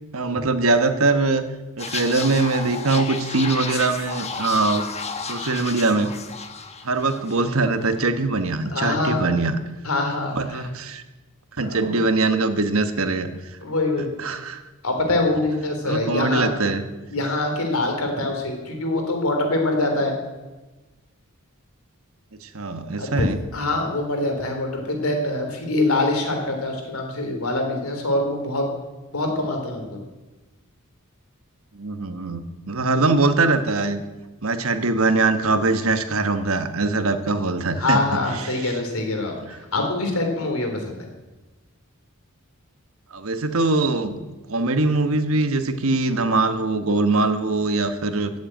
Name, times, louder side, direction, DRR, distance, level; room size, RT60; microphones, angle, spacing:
voice 1, 0.1-1.4 1.8-4.8 5.3-6.1 6.8-9.6 10.3-11.0 11.6-13.3 14.0-14.6 15.3-16.8 22.4-23.4 31.7-34.0 34.4-38.8 39.5-39.6 43.1-44.2 44.5-48.3, right 3 dB, 70° right, 9 dB, 1.3 m, -22 dB
sound 1, 1.8-7.5 7.8-8.0, left 5 dB, 30° left, 1.3 m, -32 dB
voice 2, 8.7-9.3 9.8-10.6 11.6-12.1 13.6-14.1 14.8-16.5 17.1-20.1 23.0-23.3 23.5-28.7 29.1-30.0 37.8-41.1, left 2 dB, 80° left, 3 dB, 3.5 m, -24 dB
15.0 x 8.1 x 9.0 m, 1.2 s
head